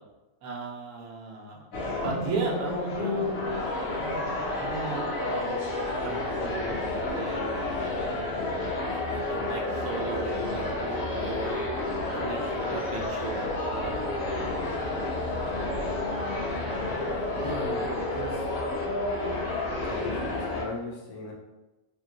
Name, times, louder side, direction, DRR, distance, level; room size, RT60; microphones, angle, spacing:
voice 1, 0.4-1.7 2.0-3.6 3.9-8.2 8.9-11.7 12.1-13.9, right 4 dB, 75° right, -1 dB, 1.0 m, -37 dB
sound 1, 1.7-20.6, left 2 dB, 70° left, 1.0 m, -30 dB
voice 2, 17.3-18.4 19.8-21.3, left 1 dB, 90° left, -2 dB, 1.2 m, -37 dB
3.0 x 2.9 x 2.3 m, 1.1 s
omnidirectional pair, 1.6 m